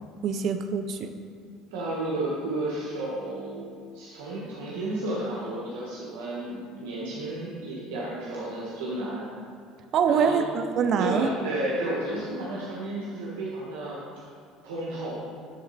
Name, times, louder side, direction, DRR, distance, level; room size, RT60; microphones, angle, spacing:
voice 1, 0.2-1.1 9.9-11.3, right 6 dB, 55° right, 9 dB, 0.6 m, -24 dB
voice 2, 1.7-3.7 3.9-9.3 10.1-10.4 11.0-14.0 14.6-15.2, right 1 dB, 90° right, -6 dB, 1.4 m, -32 dB
12.0 x 4.1 x 4.1 m, 2.3 s
supercardioid pair, 100°, 0 cm